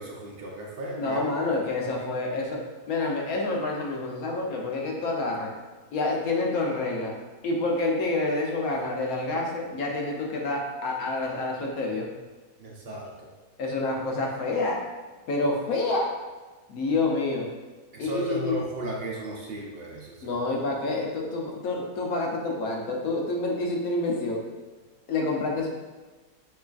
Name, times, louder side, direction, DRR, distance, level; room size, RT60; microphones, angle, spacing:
voice 1, 0.0-1.2 1.8-2.1 12.6-13.3 17.9-20.4, right 1 dB, 60° right, -2 dB, 0.6 m, -35 dB
voice 2, 1.0-5.5 5.9-7.1 7.4-12.1 13.6-14.9 15.3-16.1 16.7-17.5 18.0-18.6 20.2-24.4 25.1-25.7, left 2 dB, 70° left, -1 dB, 1.1 m, -28 dB
6.9 x 3.2 x 2.4 m, 1.2 s
omnidirectional pair, 1.7 m